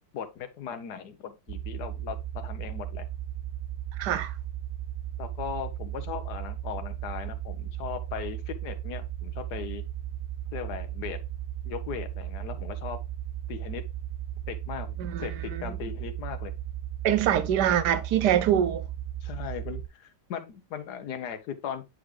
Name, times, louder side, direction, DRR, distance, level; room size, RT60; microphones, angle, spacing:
voice 1, 0.1-3.1 5.2-9.8 10.5-11.2 11.6-13.0 13.5-13.8 14.5-16.5 19.2-21.8, left 8 dB, 75° left, 1.5 m, -38 dB
sound 1, 1.5-19.9, right 11 dB, 40° right, 0.9 m, -36 dB
voice 2, 4.0-4.3 15.0-15.3 15.5-15.8 17.0-18.8, right 10 dB, 80° right, 1.3 m, -24 dB
9.3 x 3.8 x 3.2 m
omnidirectional pair, 1.8 m